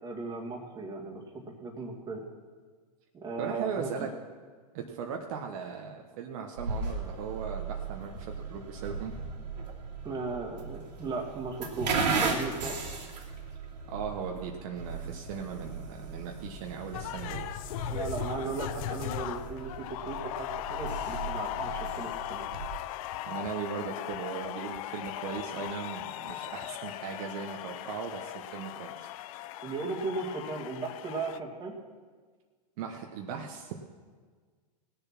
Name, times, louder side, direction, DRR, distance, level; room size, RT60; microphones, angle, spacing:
voice 1, 0.0-2.2 3.1-4.1 10.0-12.8 17.9-22.5 29.6-31.8, right 3 dB, 20° right, -1 dB, 2.1 m, -37 dB
voice 2, 3.4-4.1 4.7-9.2 13.9-17.5 23.2-29.1 32.8-33.8, right 6 dB, 55° right, 2 dB, 1.2 m, -38 dB
sound 1, 6.6-22.8, right 4 dB, 85° right, 2.8 m, -37 dB
sound 2, 16.9-31.4, left 14 dB, 55° left, 0.5 m, -38 dB
19.0 x 6.9 x 6.0 m, 1.5 s
hypercardioid pair, 125°, 21 cm